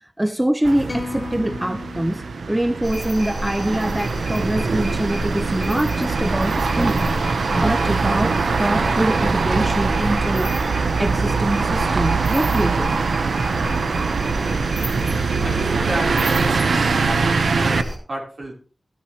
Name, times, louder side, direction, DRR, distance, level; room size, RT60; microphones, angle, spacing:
voice 1, 0.0-13.0, right 1 dB, 15° right, 0.4 m, -24 dB
sound 1, 0.6-17.8, right 4 dB, 90° right, 0.6 m, -22 dB
sound 2, 0.9-3.2, left 3 dB, 45° left, 1.4 m, -35 dB
sound 3, 2.8-18.0, equal, 45° right, 2.8 m, -31 dB
voice 2, 15.4-17.1 17.5-18.5, right 1 dB, 65° right, 3.6 m, -31 dB
13.5 x 10.5 x 3.0 m
wide cardioid pair, 65°, 0 cm